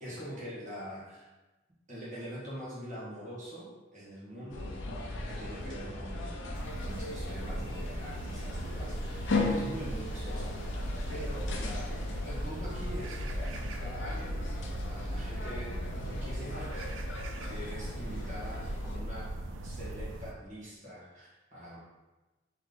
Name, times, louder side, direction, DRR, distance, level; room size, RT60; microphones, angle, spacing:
voice 1, 0.0-1.3 1.9-4.7 5.3-6.4 6.8-10.6 10.8-14.4 14.8-16.7 17.5-19.3 19.6-21.8, equal, 40° right, -8 dB, 1.4 m, -44 dB
sound 1, 4.5-19.0, left 2 dB, 65° left, 0.6 m, -36 dB
sound 2, 6.5-20.3, right 2 dB, 70° right, 0.4 m, -40 dB
3.9 x 3.3 x 3.4 m, 1.1 s
head